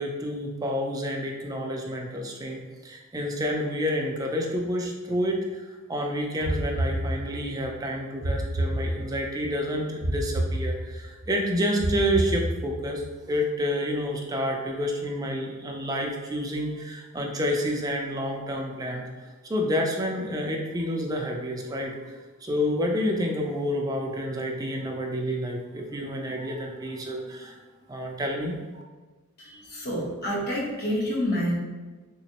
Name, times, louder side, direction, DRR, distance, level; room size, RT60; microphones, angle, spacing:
voice 1, 0.0-19.1 19.5-22.1 22.4-27.6 27.9-28.6, equal, 15° right, 0 dB, 0.4 m, -29 dB
sound 1, 6.4-7.6 8.2-9.4 10.0-11.2 11.8-13.0, right 1 dB, 90° right, 0.6 m, -29 dB
voice 2, 29.4-31.5, equal, 50° left, -5 dB, 1.0 m, -28 dB
3.6 x 3.0 x 2.8 m, 1.3 s
head